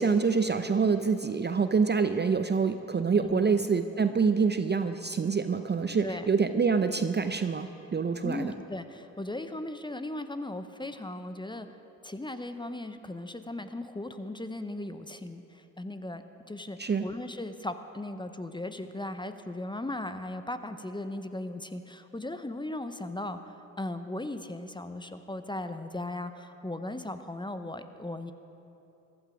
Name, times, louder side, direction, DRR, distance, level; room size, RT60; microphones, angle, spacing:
voice 1, 0.0-8.5 16.8-17.0, right 5 dB, 25° right, 9 dB, 0.6 m, -26 dB
voice 2, 3.2-3.6 6.0-6.3 8.2-11.7 12.0-16.2 16.5-23.4 23.8-28.3, left 1 dB, 10° left, 9 dB, 0.8 m, -37 dB
15.0 x 11.5 x 5.1 m, 2.9 s
hypercardioid pair, 50°, 39 cm